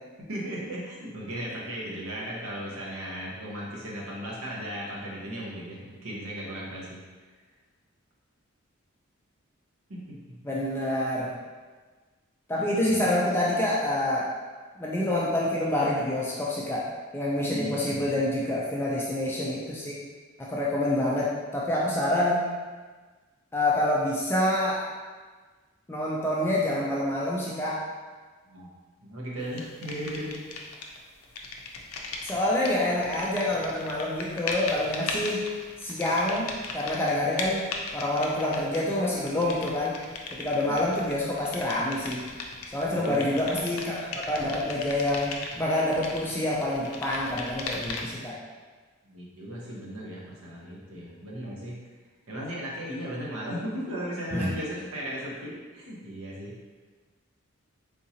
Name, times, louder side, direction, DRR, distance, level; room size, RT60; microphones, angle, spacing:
voice 1, 0.3-7.0 9.9-10.0 10.3-10.4 12.6-13.2 17.5-18.1 21.0-21.1 28.4-28.7 29.0-30.5 40.6-40.8 42.9-43.5 49.0-51.8 52.3-56.5, equal, 80° right, -4 dB, 0.9 m, -36 dB
voice 2, 10.4-11.4 12.5-14.3 14.8-20.0 20.4-22.5 23.5-24.8 25.9-27.8 32.2-35.5 35.8-40.0 40.3-42.3 42.7-48.3 54.3-54.5, left 1 dB, 10° left, -5 dB, 0.3 m, -27 dB
sound 1, 29.6-31.0 31.2-48.3, left 3 dB, 85° left, 0.4 m, -38 dB
3.6 x 2.8 x 2.8 m, 1.4 s
head